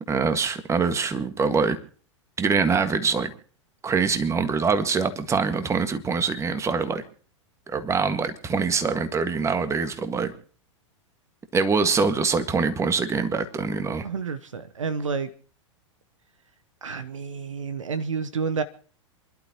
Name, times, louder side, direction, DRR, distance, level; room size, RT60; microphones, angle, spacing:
voice 1, 0.1-1.8 2.4-3.3 3.8-7.0 7.7-10.3 11.5-14.1, right 5 dB, 15° right, 9 dB, 1.8 m, -24 dB
voice 2, 14.0-15.3 16.8-18.6, right 5 dB, 75° right, 14 dB, 1.0 m, -29 dB
27.5 x 12.0 x 3.0 m, 0.41 s
figure-of-eight pair, 95°, 16 cm